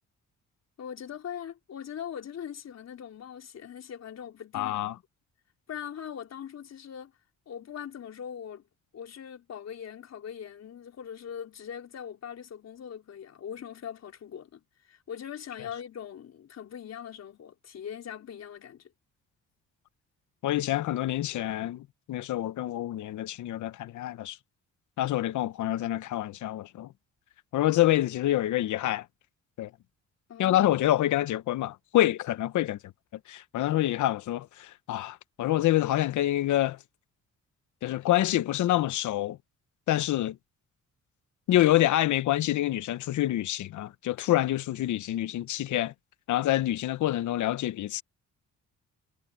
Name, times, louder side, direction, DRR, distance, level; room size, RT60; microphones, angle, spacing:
voice 1, 0.8-4.9 5.7-7.1 7.5-8.6 8.9-14.6 14.9-18.9 30.3-30.6, left 8 dB, 60° left, 4.1 m, -41 dB
voice 2, 4.5-4.9 20.4-24.4 25.0-26.9 27.5-29.0 29.6-29.7 30.4-32.8 33.3-36.8 37.8-39.4 39.9-40.4 41.5-45.9 46.3-48.0, left 14 dB, 75° left, 1.0 m, -27 dB
cardioid pair, 90°, 30 cm